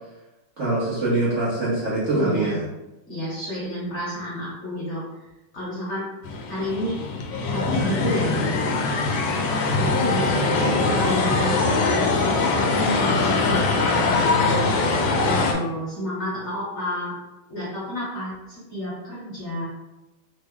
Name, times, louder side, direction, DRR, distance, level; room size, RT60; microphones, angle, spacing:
voice 1, 0.6-2.6, right 2 dB, 55° right, -9 dB, 0.9 m, -23 dB
voice 2, 2.1-2.6 3.1-5.3 5.5-6.1 6.5-7.0 7.5-8.6 9.6-14.6 15.2-17.1 17.5-19.6, left 1 dB, 50° left, -7 dB, 0.9 m, -30 dB
sound 1, 6.2-15.5, left 3 dB, 75° left, 1.2 m, -22 dB
3.3 x 2.0 x 3.5 m, 0.99 s
omnidirectional pair, 2.1 m